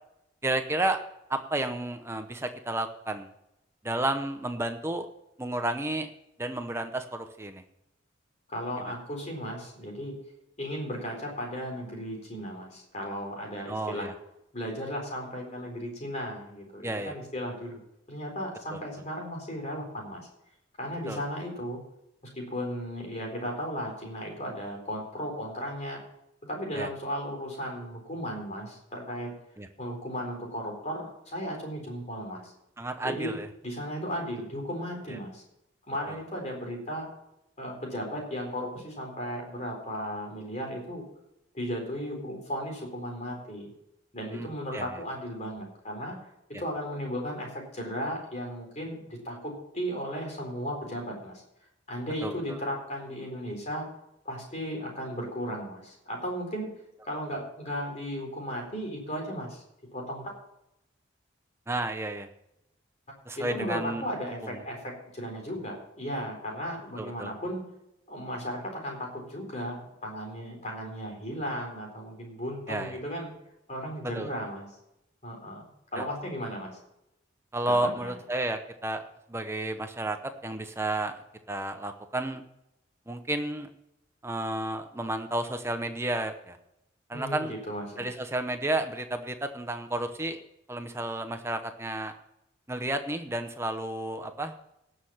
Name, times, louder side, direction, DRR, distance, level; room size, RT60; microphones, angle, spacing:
voice 1, 0.4-1.0 1.3-3.3 3.8-5.1 5.4-6.1 6.4-7.6 13.7-14.1 16.8-17.1 18.7-18.8 21.1-21.2 26.7-26.9 29.6-29.7 32.8-33.5 35.1-35.2 36.1-36.2 44.3-44.5 44.7-44.9 52.2-52.4 61.7-62.3 63.3-64.0 64.5-64.6 67.0-67.3 72.7-73.0 74.1-74.3 76.0-76.1 77.5-79.0 79.3-80.2 80.4-81.2 81.5-82.4 83.1-83.7 84.2-86.6 87.1-87.5 88.0-90.4 90.7-92.1 92.7-94.5, right 1 dB, 15° right, 7 dB, 0.8 m, -31 dB
voice 2, 8.5-10.2 10.6-14.1 14.5-17.8 18.1-20.3 20.8-21.8 22.3-26.0 26.4-29.3 29.8-32.5 33.0-35.4 35.9-37.1 37.6-41.0 41.5-43.7 44.1-46.2 46.5-51.4 51.9-53.9 54.2-56.8 57.0-59.6 59.9-60.3 63.4-67.6 68.1-73.3 73.7-74.7 75.2-75.6 75.9-76.8 77.6-78.1 87.1-88.1, equal, 35° left, 1 dB, 4.1 m, -35 dB
18.0 x 6.6 x 5.7 m, 0.83 s
head